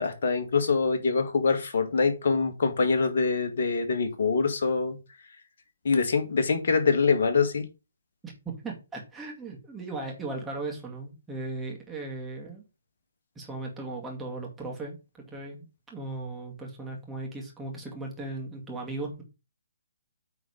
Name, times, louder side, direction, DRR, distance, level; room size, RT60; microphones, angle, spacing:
voice 1, 0.0-5.0 5.8-7.7, left 4 dB, 55° left, 1.9 m, -24 dB
voice 2, 8.2-12.6 13.4-15.0 15.3-19.2, right 2 dB, 10° right, 2.3 m, -37 dB
9.2 x 4.1 x 5.1 m
figure-of-eight pair, 135°, 0 cm